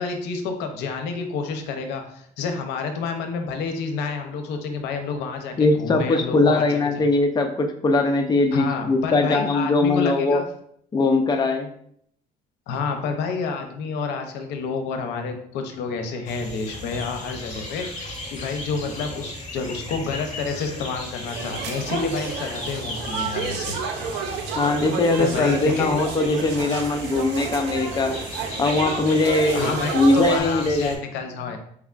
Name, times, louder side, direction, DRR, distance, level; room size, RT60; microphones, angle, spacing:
voice 1, 0.0-6.8 8.5-10.5 12.7-17.9 18.3-23.8 25.2-26.0 29.5-31.6, left 4 dB, 85° left, 5 dB, 0.6 m, -29 dB
voice 2, 5.6-10.4 10.9-11.7 24.5-28.1 28.6-30.9, left 2 dB, 25° left, 4 dB, 0.5 m, -21 dB
sound 1, 16.3-31.0, left 1 dB, 45° left, 1.6 m, -36 dB
sound 2, 21.3-30.4, right 5 dB, 85° right, 0.6 m, -31 dB
4.8 x 3.4 x 2.4 m, 0.67 s
cardioid pair, 110°, 17 cm